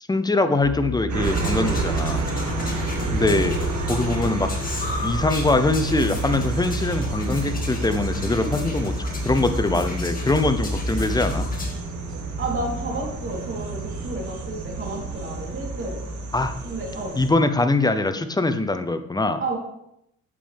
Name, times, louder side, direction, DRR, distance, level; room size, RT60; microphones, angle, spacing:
voice 1, 0.1-2.2 3.1-3.6 3.9-4.5 5.0-8.9 9.2-11.5 16.3-16.5 17.2-19.4, left 2 dB, 15° left, 9 dB, 0.7 m, -22 dB
sound 1, 0.6-11.7, left 2 dB, 65° left, 2.6 m, -32 dB
sound 2, 1.1-17.3, right 4 dB, 70° right, 1.9 m, -30 dB
sound 3, 1.2-11.7, left 3 dB, 30° left, 2.0 m, -36 dB
voice 2, 2.6-2.9 8.4-8.5 12.4-16.0 16.6-17.2 19.4-19.6, right 2 dB, 40° right, -2 dB, 3.4 m, -31 dB
8.3 x 7.5 x 3.5 m, 0.79 s
cardioid pair, 90°, 30 cm